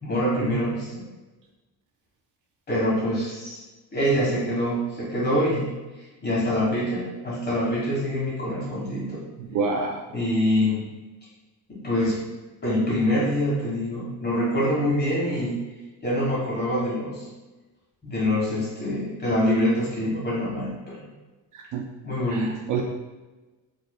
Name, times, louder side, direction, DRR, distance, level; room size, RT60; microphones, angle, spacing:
voice 1, 0.0-1.1 2.7-3.6 3.9-5.7 6.2-9.2 10.1-10.8 11.7-12.2 12.6-15.6 16.0-17.3 18.0-21.1 22.0-22.6, equal, 25° left, -6 dB, 1.5 m, -25 dB
voice 2, 9.4-10.0 21.5-21.9 22.3-22.8, right 4 dB, 50° right, 1 dB, 0.4 m, -28 dB
4.9 x 3.1 x 2.3 m, 1.2 s
cardioid pair, 160°, 42 cm